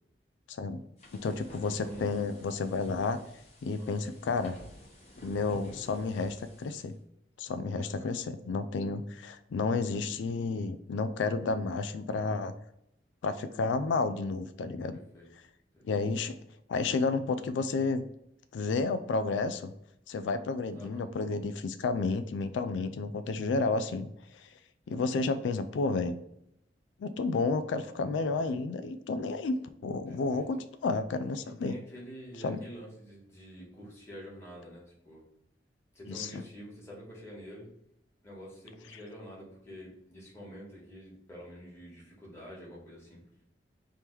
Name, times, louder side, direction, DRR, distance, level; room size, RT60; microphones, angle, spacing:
voice 1, 0.5-0.8 1.1-3.2 3.6-4.6 5.2-6.9 7.4-12.5 13.2-15.0 15.8-16.3 16.7-18.1 18.5-19.7 20.1-24.5 24.9-26.2 27.0-29.6 29.8-31.8 32.4-32.6 36.1-36.3, left 4 dB, 85° left, 11 dB, 0.3 m, -31 dB
sound 1, 1.0-6.9, left 1 dB, 35° left, 1.3 m, -51 dB
voice 2, 1.7-2.1 3.8-4.1 7.8-8.1 15.1-15.3 15.7-15.8 20.7-21.1 30.1-30.4 31.6-35.2 35.9-37.7 38.2-43.2, equal, 15° left, -5 dB, 1.5 m, -47 dB
3.5 x 3.0 x 4.6 m, 0.78 s
head